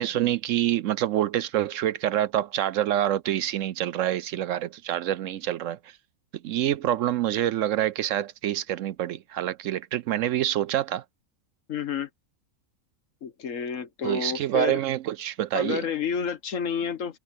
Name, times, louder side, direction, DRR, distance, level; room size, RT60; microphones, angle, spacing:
voice 1, 0.0-5.8 6.4-11.0 14.0-15.9, right 12 dB, 70° right, 0.9 m, -26 dB
voice 2, 11.7-12.1 13.2-14.8 15.5-17.2, left 7 dB, 65° left, 1.5 m, -30 dB
omnidirectional pair, 1.5 m